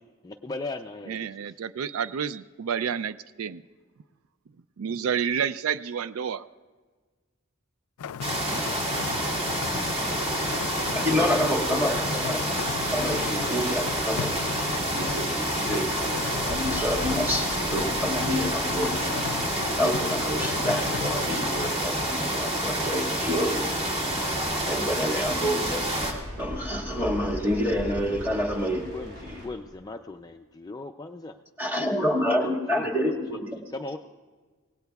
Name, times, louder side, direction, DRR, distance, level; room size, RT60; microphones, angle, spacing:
voice 1, 0.2-1.3 28.9-29.1 29.4-31.3 32.2-32.4 32.7-33.0 33.5-34.0, left 2 dB, 20° left, 5 dB, 0.3 m, -37 dB
voice 2, 1.1-3.6 4.8-6.4 8.4-8.6, right 7 dB, 80° right, 13 dB, 0.4 m, -30 dB
sound 1, 8.0-21.7, left 7 dB, 90° left, 0.4 m, -37 dB
sound 2, 8.2-26.1, right 1 dB, 25° right, 2.0 m, -28 dB
sound 3, 9.7-29.5, equal, 50° right, 6.0 m, -41 dB
voice 3, 10.9-12.5 12.9-15.9 16.3-19.2 19.8-23.6 24.6-25.8 26.4-28.9 29.2-29.4 31.6-33.6, equal, 10° right, -2 dB, 1.7 m, -28 dB
24.5 x 18.5 x 2.3 m, 1.4 s
head